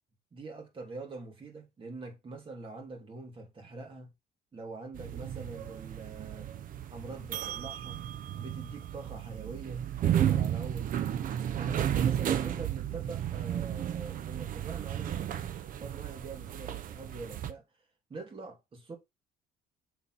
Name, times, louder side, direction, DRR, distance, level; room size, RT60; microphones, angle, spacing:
voice 1, 0.3-4.1 4.5-6.5 6.9-8.0 8.4-11.2 11.6-17.6 18.1-19.0, right 3 dB, 30° right, 2.6 m, -44 dB
sound 1, 4.9-17.5, right 10 dB, 55° right, 0.7 m, -33 dB
7.1 x 3.9 x 4.3 m
cardioid pair, 110°, 17 cm